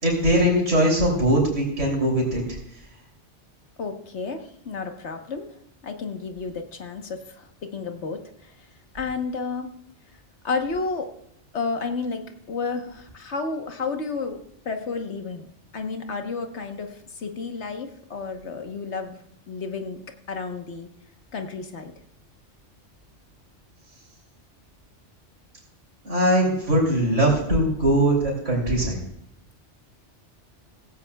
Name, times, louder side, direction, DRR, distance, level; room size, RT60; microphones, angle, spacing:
voice 1, 0.0-2.4 26.0-29.0, right 1 dB, 90° right, -2 dB, 3.5 m, -21 dB
voice 2, 3.8-5.5 5.8-8.5 8.9-9.7 10.4-11.1 11.5-12.2 12.5-14.4 14.6-15.5 15.7-19.2 19.5-20.0 20.3-20.9 21.3-21.9, left 4 dB, 70° left, 5 dB, 1.5 m, -31 dB
16.5 x 16.0 x 2.3 m, 0.77 s
omnidirectional pair, 1.2 m